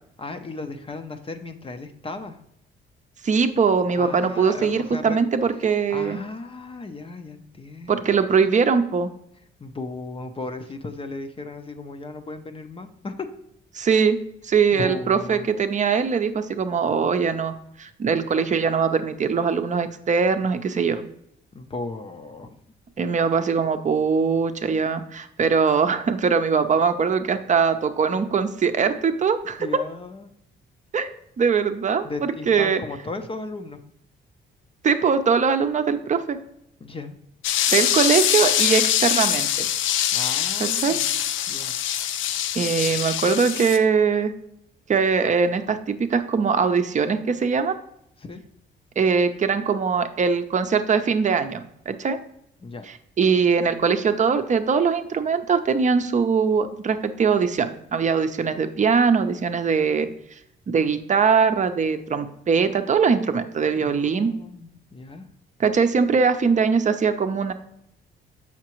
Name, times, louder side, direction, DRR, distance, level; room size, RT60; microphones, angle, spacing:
voice 1, 0.2-2.4 3.9-5.2 5.5-8.3 9.6-13.3 14.7-15.5 21.5-22.6 29.6-30.3 32.0-33.8 36.8-37.2 40.1-41.1 41.5-41.7 48.2-48.4 52.6-52.8 63.8-65.3, left 3 dB, 25° left, 7 dB, 0.6 m, -36 dB
voice 2, 3.2-6.2 7.9-9.1 13.7-14.2 14.4-21.0 23.0-29.7 30.9-31.1 31.4-32.8 34.8-36.4 37.7-39.7 40.6-41.0 42.5-44.3 44.9-47.8 49.0-52.2 53.2-60.1 60.7-64.3 65.6-67.5, right 5 dB, 40° right, 9 dB, 0.6 m, -21 dB
sound 1, 37.4-43.8, left 11 dB, 80° left, 0.5 m, -23 dB
7.3 x 5.8 x 3.0 m, 0.74 s
cardioid pair, 90°, 20 cm